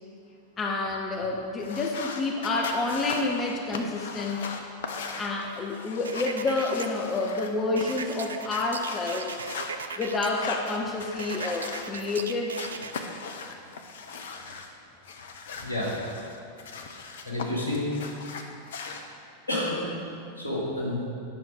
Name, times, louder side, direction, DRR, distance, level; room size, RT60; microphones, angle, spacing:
voice 1, 0.6-4.6 5.2-9.4 10.0-12.6, left 3 dB, 20° left, 1 dB, 0.8 m, -29 dB
sound 1, 1.6-7.5 7.8-9.7 10.2-12.2 12.6-14.7 15.0-17.5 17.7-19.0, left 5 dB, 60° left, 0.8 m, -39 dB
sound 2, 6.0-6.9 7.8-10.3 11.2-12.9, right 5 dB, 70° right, 0.4 m, -37 dB
voice 2, 15.6-15.9 17.2-17.8 19.5-19.9 20.4-21.0, left 1 dB, 80° left, -6 dB, 2.5 m, -29 dB
10.5 x 6.1 x 5.0 m, 2.5 s
figure-of-eight pair, 90°, 0 cm